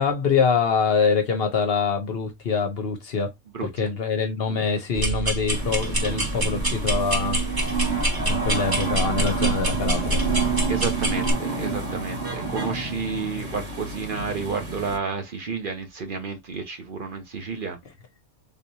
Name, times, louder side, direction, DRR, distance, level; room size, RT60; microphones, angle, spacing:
voice 1, 0.0-3.3 3.6-7.9 8.2-10.2, left 5 dB, 55° left, 0.8 m, -25 dB
voice 2, 3.5-3.9 10.7-17.8, right 4 dB, 50° right, 0.8 m, -31 dB
sound 1, 4.9-11.3, right 1 dB, 20° right, 1.0 m, -26 dB
sound 2, 5.5-15.0, right 4 dB, 70° right, 1.9 m, -29 dB
3.6 x 2.9 x 2.7 m
omnidirectional pair, 1.3 m